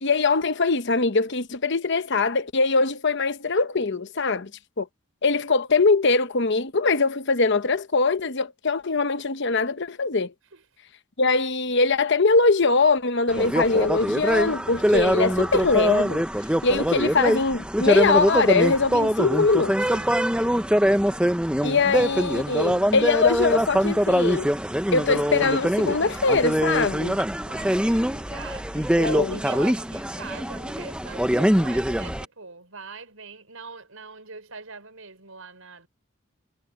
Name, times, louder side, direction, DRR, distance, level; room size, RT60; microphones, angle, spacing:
voice 1, 0.0-4.5 4.8-4.9 5.2-10.3 11.2-16.2 16.6-19.8 21.6-24.5 24.9-27.2 29.0-29.4, left 4 dB, 55° left, 0.9 m, -22 dB
voice 2, 4.2-4.6 10.5-10.6 19.9-20.4 27.5-35.9, right 4 dB, 70° right, 5.2 m, -42 dB
sound 1, 13.3-32.3, equal, 5° right, 0.9 m, -23 dB
head